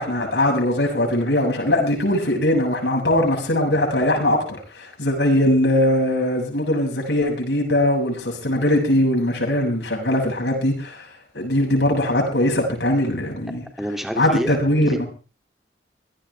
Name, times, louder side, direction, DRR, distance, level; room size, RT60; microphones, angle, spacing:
voice 1, 0.0-11.0 11.3-13.6 14.2-15.1, left 1 dB, 85° left, 1 dB, 6.7 m, -20 dB
voice 2, 13.8-14.6 14.8-15.0, equal, ahead, 4 dB, 2.6 m, -28 dB
24.0 x 17.0 x 3.4 m, 0.36 s
head